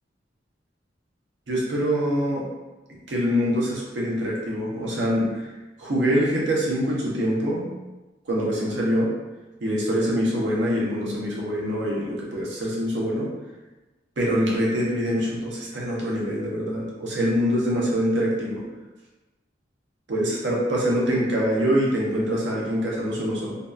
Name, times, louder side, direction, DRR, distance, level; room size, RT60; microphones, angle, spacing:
voice 1, 1.5-2.5 2.9-5.5 5.8-7.7 8.2-9.1 9.6-13.3 14.2-18.6 20.1-23.6, equal, 70° right, -3 dB, 0.6 m, -24 dB
2.6 x 2.3 x 2.2 m, 1.1 s
head